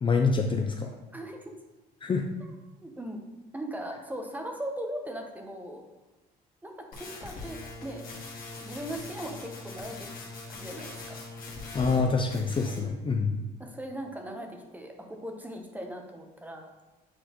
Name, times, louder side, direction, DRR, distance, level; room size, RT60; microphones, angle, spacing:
voice 1, 0.0-0.9 2.0-2.2 11.7-13.4, left 4 dB, 30° left, 3 dB, 0.5 m, -26 dB
voice 2, 1.1-1.5 2.8-5.8 6.6-8.0 8.6-10.1 10.5-11.2 12.6-13.0 13.6-16.7, right 1 dB, 10° right, 3 dB, 0.9 m, -39 dB
sound 1, 6.9-12.0 12.3-12.9, left 3 dB, 60° left, 1.8 m, -41 dB
8.0 x 4.1 x 3.0 m, 1.1 s
cardioid pair, 110°, 17 cm